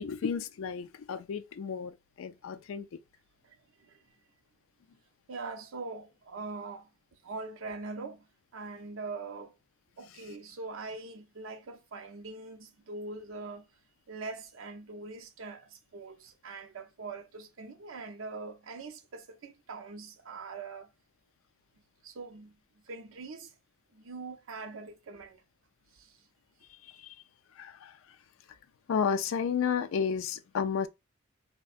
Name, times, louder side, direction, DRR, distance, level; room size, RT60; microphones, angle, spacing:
voice 1, 0.0-2.9 26.8-27.2 27.6-28.0 28.9-30.9, left 6 dB, 80° left, 0.4 m, -32 dB
voice 2, 3.4-4.2 5.3-6.9 7.2-8.3 8.5-9.5 10.0-13.6 14.1-20.9 22.0-22.6 22.9-23.5 23.9-25.4 25.9-26.2, right 3 dB, 80° right, 0.6 m, -42 dB
3.5 x 2.1 x 2.4 m
head